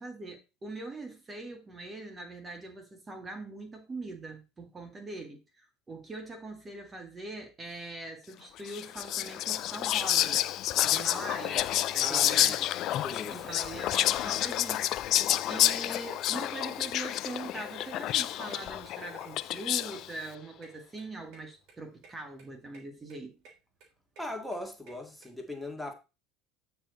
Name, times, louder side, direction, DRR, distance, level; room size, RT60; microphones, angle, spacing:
voice 1, 0.0-10.5 10.8-12.7 13.3-14.9 15.5-23.3, right 2 dB, 25° right, 1.8 m, -42 dB
Whispering, 8.7-20.1, left 13 dB, 55° left, 0.4 m, -29 dB
voice 2, 12.0-12.6 13.0-13.4 24.2-25.9, left 1 dB, 5° left, 2.0 m, -39 dB
sound 1, 13.8-19.8, left 9 dB, 70° left, 1.0 m, -53 dB
sound 2, 16.5-25.3, right 4 dB, 65° right, 3.2 m, -58 dB
8.8 x 4.8 x 4.0 m
hypercardioid pair, 85°, 0 cm